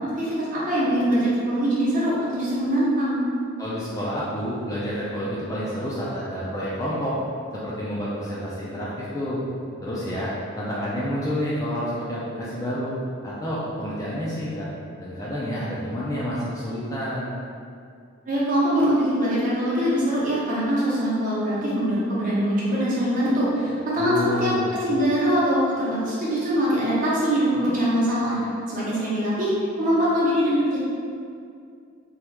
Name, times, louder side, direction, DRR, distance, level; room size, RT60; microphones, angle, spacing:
voice 1, 0.2-3.2 18.3-24.5 24.8-28.4 28.7-29.5 29.8-30.8, equal, 40° right, -8 dB, 0.7 m, -23 dB
voice 2, 3.6-7.1 7.5-9.4 9.8-12.9 13.2-14.7 15.0-17.3 24.0-24.7, equal, 15° left, -7 dB, 0.3 m, -29 dB
2.9 x 2.3 x 3.3 m, 2.4 s
head